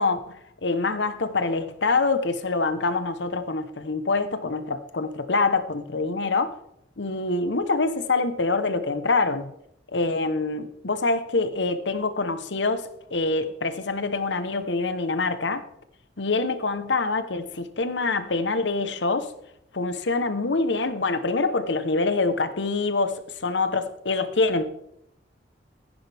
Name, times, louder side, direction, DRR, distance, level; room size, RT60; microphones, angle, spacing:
voice 1, 0.0-6.5 7.0-9.5 9.9-15.6 16.2-19.3 19.7-24.6, left 3 dB, 80° left, 1.0 m, -25 dB
14.5 x 10.5 x 3.5 m
head